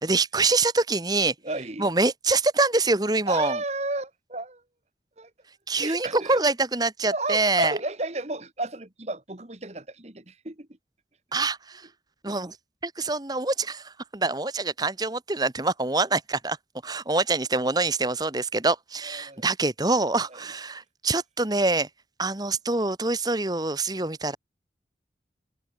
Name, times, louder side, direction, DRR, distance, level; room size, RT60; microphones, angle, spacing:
voice 1, 0.0-1.3 1.8-3.6 5.7-7.7 11.3-11.8 12.2-12.6 12.8-16.6 16.8-21.9 22.2-24.4, right 3 dB, 20° right, 1.3 m, -25 dB
voice 2, 1.4-1.9 3.3-4.6 5.2-5.3 5.8-6.4 7.1-10.7 19.0-19.4 20.3-20.4, right 2 dB, 35° right, 1.9 m, -32 dB
head